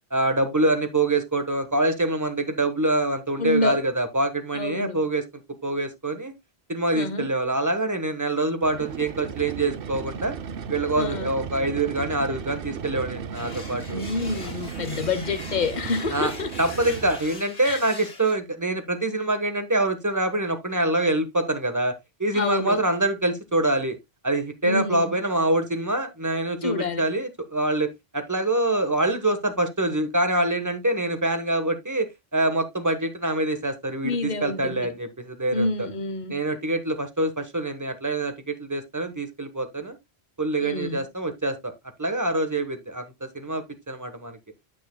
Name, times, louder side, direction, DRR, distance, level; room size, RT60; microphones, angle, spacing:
voice 1, 0.1-5.2 5.6-6.3 6.7-10.3 10.7-14.0 16.1-16.3 16.6-21.9 22.2-24.0 24.2-35.9 36.3-40.0 40.4-41.7 42.0-44.4, right 2 dB, 15° right, 1.2 m, -25 dB
voice 2, 3.4-3.8 4.5-5.0 6.9-7.3 10.9-11.4 13.9-16.5 17.6-17.8 22.3-22.8 24.6-25.2 26.6-27.1 34.0-34.9 35.5-36.4 40.6-41.0, left 3 dB, 45° left, 1.1 m, -28 dB
sound 1, 8.6-17.4, right 6 dB, 60° right, 0.9 m, -35 dB
sound 2, 13.3-18.3, left 3 dB, 85° left, 2.2 m, -42 dB
9.1 x 8.4 x 2.2 m
omnidirectional pair, 1.1 m